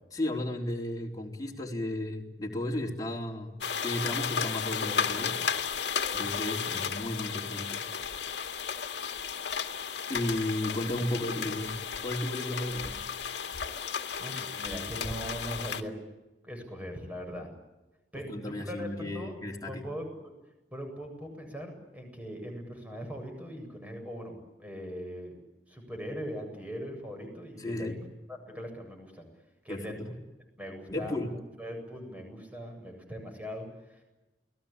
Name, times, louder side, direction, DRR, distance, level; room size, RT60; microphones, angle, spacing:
voice 1, 0.1-3.6 3.8-5.4 6.1-7.8 10.1-11.8 12.0-13.0 18.3-19.9 27.6-28.0 29.7-30.1 30.9-31.3, left 1 dB, 20° left, 0 dB, 4.0 m, -34 dB
sound 1, 3.6-15.8, left 6 dB, 75° left, 2.0 m, -34 dB
voice 2, 14.2-15.9 16.4-17.5 18.1-19.4 19.7-20.3 20.7-25.4 25.7-28.0 28.3-29.3 29.6-30.2 30.6-34.0, equal, 10° right, 3 dB, 8.0 m, -40 dB
29.5 x 19.5 x 8.9 m, 1.0 s
head